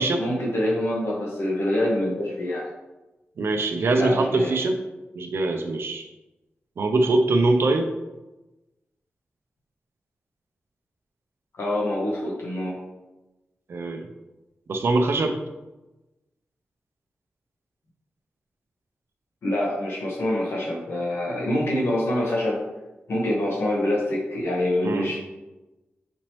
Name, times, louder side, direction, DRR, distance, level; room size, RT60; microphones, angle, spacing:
voice 1, 0.2-2.7 4.0-4.6 11.6-12.8 19.4-22.6 23.1-25.2, left 1 dB, 80° left, -3 dB, 1.2 m, -25 dB
voice 2, 3.4-4.8 5.1-6.0 6.8-7.9 13.7-14.1 14.7-15.4 24.8-25.1, right 2 dB, 70° right, 5 dB, 0.5 m, -22 dB
5.1 x 3.0 x 3.0 m, 1.0 s
wide cardioid pair, 85°, 4 cm